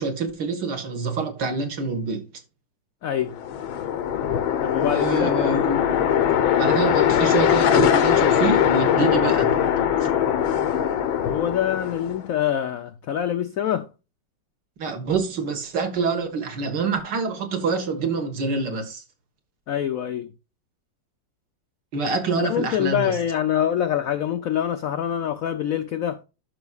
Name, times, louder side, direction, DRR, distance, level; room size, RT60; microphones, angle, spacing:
voice 1, 0.0-2.3 4.8-6.0 6.6-9.6 14.8-19.0 21.9-23.2, right 4 dB, 65° right, 2.0 m, -26 dB
voice 2, 3.0-3.4 4.6-5.3 11.3-13.9 19.7-20.3 22.4-26.2, left 10 dB, 75° left, 0.7 m, -25 dB
sound 1, 3.3-12.3, left 9 dB, 90° left, 1.7 m, -21 dB
11.5 x 6.0 x 2.3 m
omnidirectional pair, 2.1 m